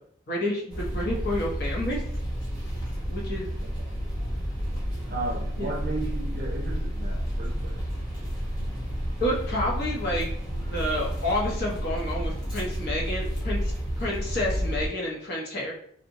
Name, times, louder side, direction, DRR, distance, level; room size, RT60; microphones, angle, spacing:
voice 1, 0.3-2.0 3.1-3.6 5.6-5.7 9.2-10.3 10.6-15.7, left 1 dB, 50° left, -3 dB, 0.6 m, -29 dB
sound 1, 0.7-14.9, equal, 20° left, 0.9 m, -31 dB
voice 2, 5.1-7.8, right 2 dB, 45° right, -1 dB, 0.5 m, -34 dB
sound 2, 7.1-13.1, equal, 80° left, 0.9 m, -45 dB
2.7 x 2.0 x 2.5 m, 0.65 s
head